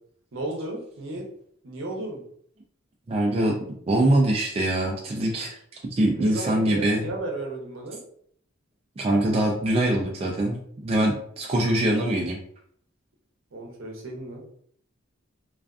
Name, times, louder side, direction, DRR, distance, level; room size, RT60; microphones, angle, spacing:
voice 1, 0.3-1.3 1.6-2.2 6.1-8.0 13.5-14.4, right 2 dB, 65° right, 0 dB, 0.7 m, -34 dB
voice 2, 3.1-3.6 3.9-5.6 5.9-7.1 9.0-10.6 10.8-12.4, right 1 dB, 30° right, -2 dB, 0.3 m, -23 dB
2.4 x 2.3 x 2.3 m, 0.64 s
head